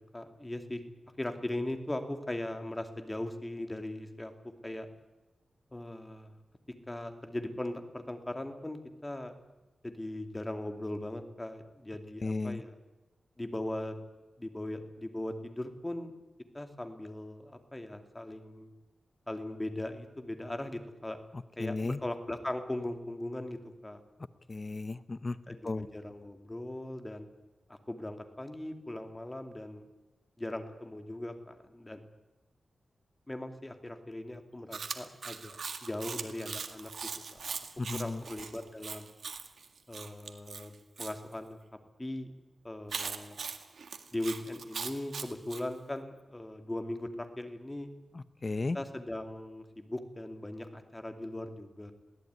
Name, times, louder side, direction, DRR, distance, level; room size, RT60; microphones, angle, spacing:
voice 1, 0.1-0.8 1.2-4.3 4.6-4.9 5.7-6.3 6.9-9.4 9.8-12.8 13.4-14.0 14.4-16.1 16.5-18.7 19.3-21.2 21.6-24.0 25.5-27.3 27.7-29.9 30.4-32.0 33.3-36.9 37.3-37.7 37.9-39.1 39.9-41.6 42.0-42.3 42.6-43.4 44.1-47.9 48.7-51.9, left 1 dB, 15° left, 6 dB, 2.6 m, -39 dB
voice 2, 12.2-12.6 21.6-22.0 24.5-25.4 25.6-25.9 37.8-38.2 48.4-48.8, left 3 dB, 35° left, 14 dB, 0.8 m, -34 dB
Chewing mastication, 34.7-41.1 42.9-45.6, right 5 dB, 70° right, 2.0 m, -40 dB
22.5 x 17.0 x 9.5 m, 1.1 s
wide cardioid pair, 105°, 0 cm